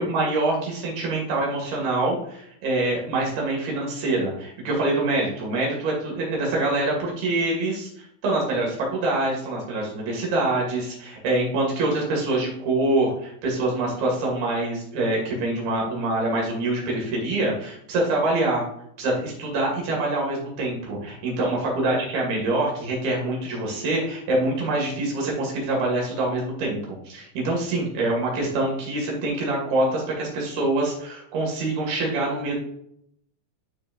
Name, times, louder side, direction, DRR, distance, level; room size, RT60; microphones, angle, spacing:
voice 1, 0.0-18.6 19.0-32.5, right 2 dB, 80° right, -2 dB, 4.1 m, -25 dB
12.5 x 4.3 x 2.6 m, 0.71 s
omnidirectional pair, 4.3 m